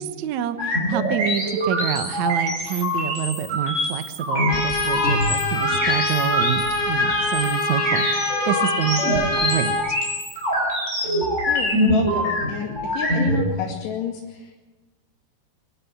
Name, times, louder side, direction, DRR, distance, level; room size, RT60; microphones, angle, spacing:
voice 1, 0.0-9.0 9.4-10.0, right 10 dB, 75° right, 10 dB, 1.7 m, -27 dB
sound 1, 0.6-13.4, equal, 15° right, 6.2 m, -24 dB
Trumpet, 4.5-9.9, left 3 dB, 45° left, 3.8 m, -25 dB
voice 2, 11.5-14.6, left 7 dB, 75° left, -4 dB, 4.4 m, -30 dB
24.5 x 12.0 x 9.7 m, 1.2 s
omnidirectional pair, 4.8 m